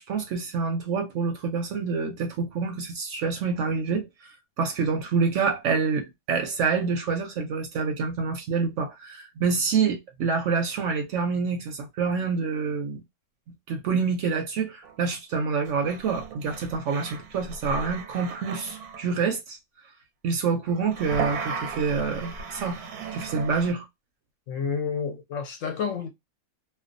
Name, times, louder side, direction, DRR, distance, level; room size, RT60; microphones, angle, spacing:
voice 1, 0.0-4.3 4.6-13.0 13.7-19.6 20.2-22.8 23.1-23.9, right 5 dB, 65° right, 0.8 m, -27 dB
sound 1, 14.8-15.0 15.7-19.1 20.7-23.7, right 5 dB, 90° right, 1.2 m, -36 dB
voice 2, 24.5-26.1, left 6 dB, 65° left, 0.9 m, -30 dB
2.5 x 2.2 x 2.5 m
omnidirectional pair, 1.6 m